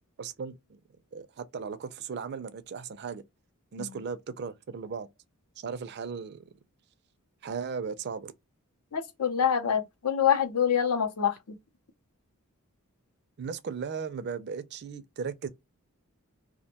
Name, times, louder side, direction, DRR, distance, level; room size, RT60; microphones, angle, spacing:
voice 1, 0.2-0.8 1.1-3.2 3.7-5.1 5.6-6.4 7.4-8.3 13.4-15.5, right 6 dB, 50° right, 0.4 m, -36 dB
voice 2, 8.9-11.4, left 8 dB, 80° left, 0.6 m, -25 dB
2.5 x 2.1 x 2.7 m
head